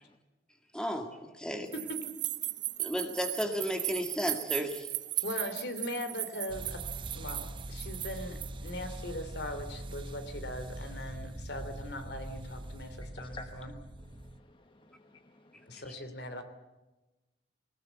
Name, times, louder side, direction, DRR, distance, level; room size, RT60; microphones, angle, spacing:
voice 1, 0.7-1.7 2.8-4.9, equal, 5° left, 5 dB, 1.9 m, -33 dB
sound 1, 1.7-8.7, right 17 dB, 75° right, 0.9 m, -37 dB
voice 2, 5.2-6.8 7.1-13.7 15.7-16.4, left 1 dB, 65° left, 8 dB, 2.9 m, -40 dB
sound 2, 6.5-14.4, right 1 dB, 25° right, 0.9 m, -42 dB
voice 3, 13.0-13.6 14.0-15.8, left 3 dB, 25° left, 7 dB, 1.0 m, -52 dB
20.0 x 19.5 x 8.1 m, 1.1 s
head